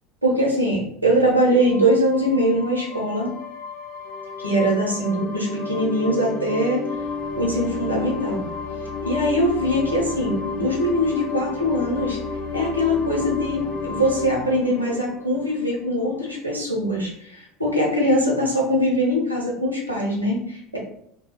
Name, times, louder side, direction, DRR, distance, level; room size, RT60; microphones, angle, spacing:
voice 1, 0.2-3.3 4.4-6.8 7.3-8.5 9.0-12.2 12.5-20.8, equal, 90° right, -2 dB, 0.6 m, -22 dB
sound 1, 1.6-16.0, left 4 dB, 55° left, 0.5 m, -31 dB
2.3 x 2.0 x 2.8 m, 0.70 s
figure-of-eight pair, 70°, 0 cm